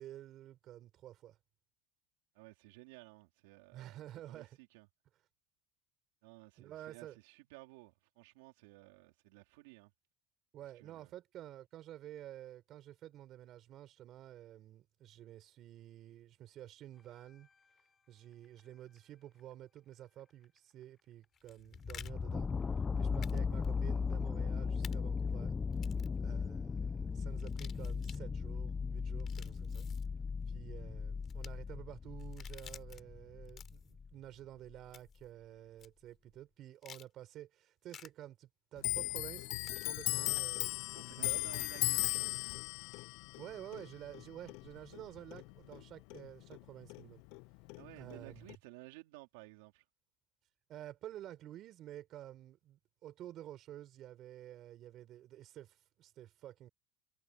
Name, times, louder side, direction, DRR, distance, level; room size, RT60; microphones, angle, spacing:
voice 1, 0.0-1.4 3.7-4.5 6.6-7.2 10.5-17.5 18.1-22.5 23.0-25.5 26.2-29.9 30.5-40.7 41.2-41.4 43.4-47.2 48.0-48.5 50.7-56.7, right 13 dB, 50° right, 4.6 m, -51 dB
voice 2, 2.3-4.9 6.2-9.9 10.8-11.1 40.9-42.4 47.8-49.8, right 22 dB, 80° right, 4.1 m, -56 dB
sound 1, 21.3-22.1 23.2-23.4 23.6-23.7 24.8-25.0 25.7-26.1 27.4-28.2 29.1-30.1 31.2-31.5 32.2-33.0 33.4-33.9 34.9-35.2 35.8-35.9 36.8-37.1 37.9-38.1 39.6-40.0, left 9 dB, 40° left, 3.4 m, -53 dB
sound 2, 21.7-34.1 34.7-34.8, left 5 dB, 20° left, 0.5 m, -37 dB
Clock, 38.8-45.8 46.1-47.4 47.7-48.5, left 27 dB, 70° left, 0.4 m, -37 dB
supercardioid pair, 120°, 0 cm